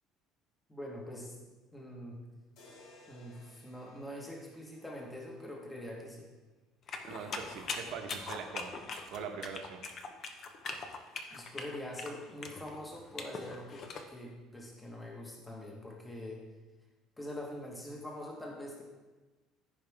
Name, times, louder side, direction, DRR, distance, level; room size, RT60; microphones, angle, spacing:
voice 1, 0.7-1.4 1.7-2.2 3.1-6.3 11.3-16.4 17.2-18.8, left 1 dB, 10° left, -2 dB, 1.3 m, -44 dB
sound 1, 2.6-6.6, left 1 dB, 75° left, 2.6 m, -61 dB
sound 2, 6.9-14.1, left 4 dB, 40° left, 0.9 m, -42 dB
voice 2, 7.0-9.8, right 6 dB, 65° right, 4 dB, 1.2 m, -43 dB
14.5 x 5.2 x 3.5 m, 1.2 s
cardioid pair, 140°, 0 cm